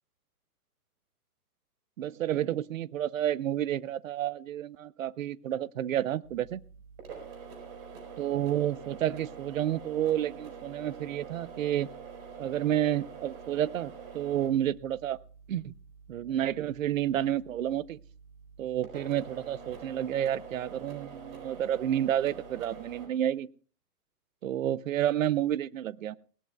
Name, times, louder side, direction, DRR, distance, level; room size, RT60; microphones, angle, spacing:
voice 1, 2.0-6.6 8.2-11.9 12.4-15.2 15.5-15.7 16.1-18.0 18.6-23.5 24.4-26.2, right 11 dB, 60° right, 19 dB, 0.7 m, -30 dB
sound 1, 6.2-23.1, right 6 dB, 40° right, 4.5 m, -46 dB
19.5 x 19.0 x 2.3 m, 0.40 s
hypercardioid pair, 170°, 47 cm